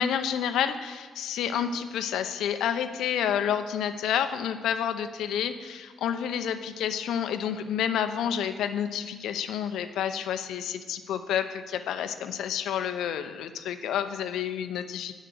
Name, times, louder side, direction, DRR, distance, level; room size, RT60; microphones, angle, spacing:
voice 1, 0.0-15.2, left 9 dB, 85° left, 9 dB, 0.7 m, -29 dB
9.0 x 6.5 x 7.6 m, 1.5 s
cardioid pair, 150°, 0 cm